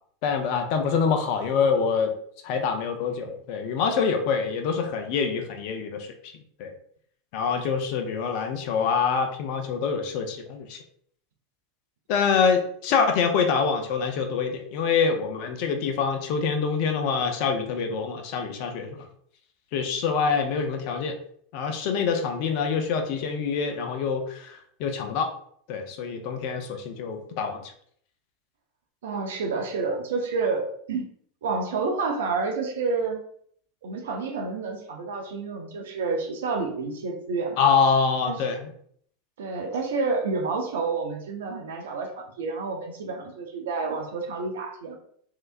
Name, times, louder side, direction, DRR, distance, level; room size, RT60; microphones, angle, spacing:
voice 1, 0.2-2.1 2.4-6.3 6.6-6.7 7.3-10.8 12.1-19.1 19.7-21.2 21.5-25.3 25.7-27.6 37.6-38.7, left 5 dB, 55° left, 5 dB, 0.5 m, -25 dB
voice 2, 29.0-31.0 31.4-33.2 33.8-37.7 38.3-38.4 39.4-45.0, right 4 dB, 70° right, 2 dB, 0.6 m, -29 dB
3.3 x 2.8 x 2.5 m, 0.62 s
hypercardioid pair, 85°, 0 cm